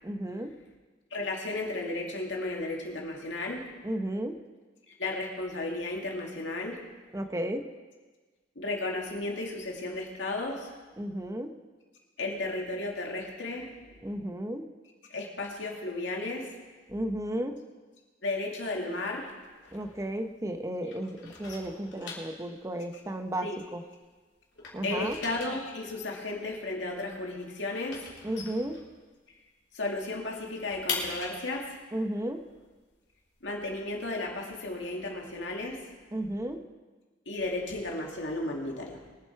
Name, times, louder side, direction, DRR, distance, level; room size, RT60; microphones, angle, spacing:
voice 1, 0.0-0.6 3.8-4.4 7.1-7.7 11.0-11.5 14.0-14.7 16.9-17.6 19.7-23.8 24.7-25.2 28.2-28.8 31.9-32.5 36.1-36.6, right 1 dB, 15° right, 7 dB, 0.7 m, -33 dB
voice 2, 1.1-3.7 5.0-6.8 8.6-10.7 12.2-14.0 15.1-16.5 18.2-19.3 19.6-19.7 23.4-23.6 24.8-28.1 29.7-31.8 33.4-35.9 37.3-39.0, left 2 dB, 90° left, 0 dB, 2.4 m, -34 dB
sound 1, 19.1-20.6 20.8-24.1 24.4-29.4 29.7-29.8 30.1-33.8, left 4 dB, 70° left, 3.3 m, -41 dB
22.5 x 7.9 x 4.6 m, 1.3 s
head